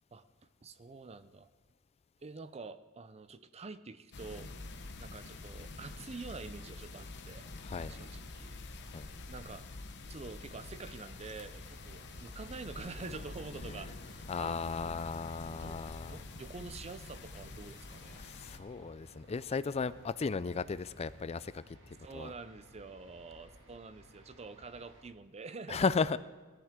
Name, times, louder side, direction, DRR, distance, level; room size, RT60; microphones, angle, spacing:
voice 1, 0.6-1.5 2.2-4.5 5.0-7.5 7.9-9.7 10.1-15.0 15.5-18.2 22.0-25.9, right 4 dB, 30° right, 13 dB, 0.5 m, -47 dB
sound 1, 4.1-18.6, left 3 dB, 50° left, 1.0 m, -47 dB
voice 2, 7.6-7.9 8.9-9.1 14.3-16.2 18.2-21.6 22.1-22.3 25.7-26.2, left 5 dB, 30° left, 15 dB, 0.4 m, -35 dB
sound 2, 10.4-25.0, equal, 55° right, 2.2 m, -57 dB
18.5 x 13.5 x 3.7 m, 1.3 s
head